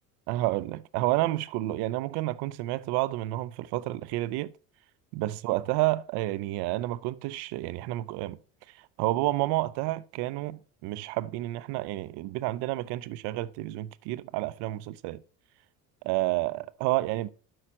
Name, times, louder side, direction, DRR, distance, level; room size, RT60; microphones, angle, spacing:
voice 1, 0.3-4.5 5.1-8.4 8.7-15.2 16.0-17.3, right 17 dB, 70° right, 0.6 m, -30 dB
7.7 x 4.9 x 4.2 m
supercardioid pair, 80°, 41 cm